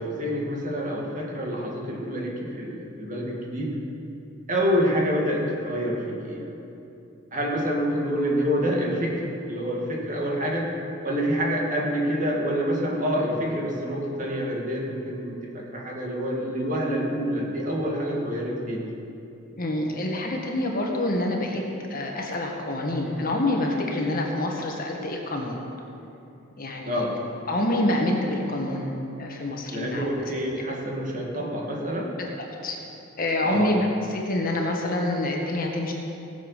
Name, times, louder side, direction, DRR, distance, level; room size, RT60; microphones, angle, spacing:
voice 1, 0.0-3.8 4.5-6.6 7.3-10.7 11.0-18.8 26.9-27.2 29.7-32.2 33.4-33.8, equal, 40° right, -2 dB, 2.2 m, -27 dB
voice 2, 19.6-21.6 21.9-25.6 26.6-27.0 27.5-28.9 29.2-30.1 32.2-32.3 32.6-32.8 33.2-35.9, left 1 dB, 45° left, 0 dB, 1.7 m, -26 dB
18.5 x 7.4 x 5.8 m, 2.8 s
head